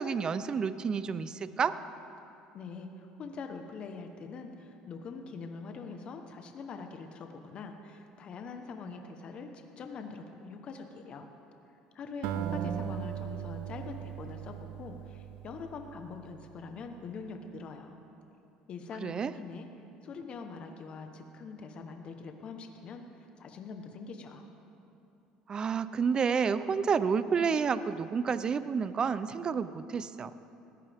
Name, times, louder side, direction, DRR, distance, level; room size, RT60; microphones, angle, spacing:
voice 1, 0.0-1.8 12.4-13.1 19.0-19.3 25.5-30.3, right 6 dB, 35° right, 14 dB, 0.6 m, -30 dB
voice 2, 2.5-11.3 11.9-18.0 18.7-19.7 20.0-24.4, left 4 dB, 45° left, 5 dB, 1.1 m, -43 dB
Acoustic guitar, 12.2-16.7, right 11 dB, 75° right, 0.6 m, -39 dB
19.5 x 14.5 x 3.6 m, 2.8 s
supercardioid pair, 105°, 3 cm